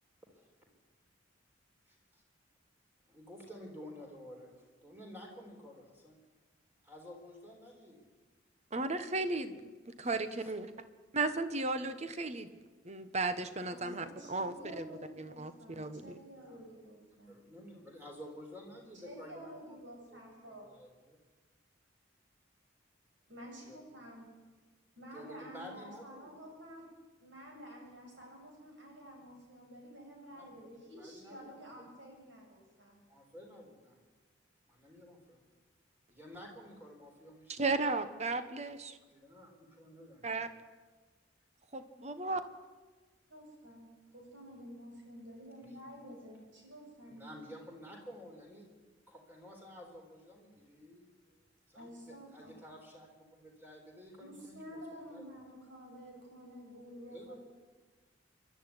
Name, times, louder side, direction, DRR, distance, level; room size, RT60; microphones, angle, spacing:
voice 1, 1.9-2.2 3.1-6.2 6.8-8.0 10.4-10.5 16.4-16.6 17.2-19.8 20.1-21.2 23.7-23.8 25.1-26.4 30.3-31.9 33.1-34.0 34.7-35.4 36.1-37.8 39.1-40.5 45.6-45.8 47.0-48.7 49.1-51.1 51.7-55.2 57.1-57.4, equal, 10° right, 1 dB, 4.3 m, -52 dB
voice 2, 8.7-10.7 11.1-12.6 12.8-14.9 15.2-16.2 37.5-39.0 40.2-40.5 41.7-42.4, right 3 dB, 35° right, 10 dB, 1.2 m, -35 dB
voice 3, 13.7-17.3 19.0-20.7 23.3-24.3 25.0-26.9 27.2-33.0 43.3-47.6 51.7-52.6 54.2-57.4, equal, 70° right, 0 dB, 7.7 m, -50 dB
27.0 x 12.0 x 9.9 m, 1.3 s
head